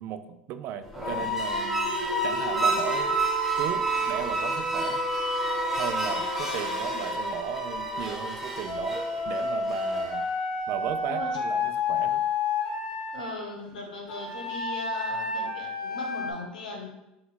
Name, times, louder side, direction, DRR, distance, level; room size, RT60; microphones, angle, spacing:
voice 1, 0.0-3.2 3.6-5.0 5.7-10.3 10.7-12.2, right 9 dB, 55° right, 10 dB, 0.3 m, -36 dB
sound 1, 0.8-10.2, right 2 dB, 5° right, 1.0 m, -29 dB
Wind instrument woodwind instrument, 2.9-8.0 8.6-13.3 14.1-16.3, left 3 dB, 55° left, 1.2 m, -32 dB
voice 2, 13.1-16.9, left 2 dB, 85° left, 1 dB, 0.9 m, -38 dB
3.9 x 2.2 x 4.1 m, 0.92 s
hypercardioid pair, 80°, 4 cm